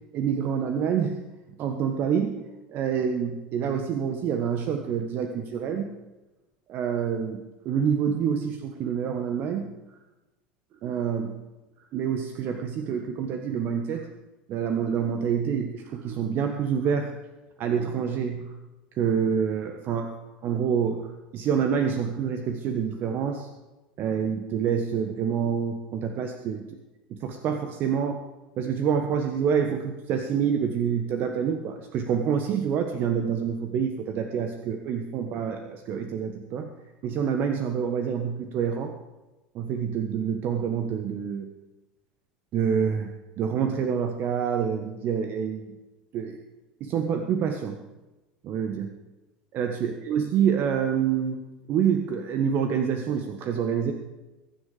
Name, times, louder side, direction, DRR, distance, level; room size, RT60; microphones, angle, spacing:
voice 1, 0.1-1.2 1.6-2.3 2.7-5.9 6.7-7.4 7.6-9.6 10.8-11.3 11.9-14.1 14.5-17.1 17.6-18.4 18.9-20.2 20.4-21.1 21.3-23.5 24.0-26.6 27.1-28.2 28.6-36.7 37.0-38.9 39.5-41.5 42.5-43.1 43.4-45.7 46.1-46.4 46.8-47.8 48.4-48.9 49.5-51.4 51.7-53.9, right 7 dB, 45° right, 6 dB, 1.4 m, -27 dB
22.5 x 10.0 x 5.0 m, 1.1 s
figure-of-eight pair, 75°, 5 cm